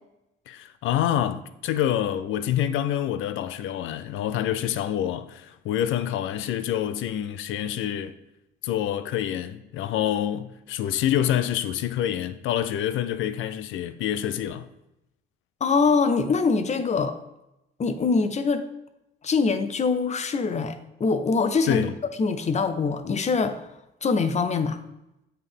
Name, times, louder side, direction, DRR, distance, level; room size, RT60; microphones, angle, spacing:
voice 1, 0.5-8.1 8.6-14.7 21.7-21.9, left 11 dB, 80° left, 0.4 m, -27 dB
voice 2, 15.6-17.2 17.8-18.7 19.2-21.9 22.2-23.6 24.0-24.8, left 4 dB, 35° left, 0.5 m, -23 dB
8.1 x 3.4 x 3.7 m
cardioid pair, 90°, 20 cm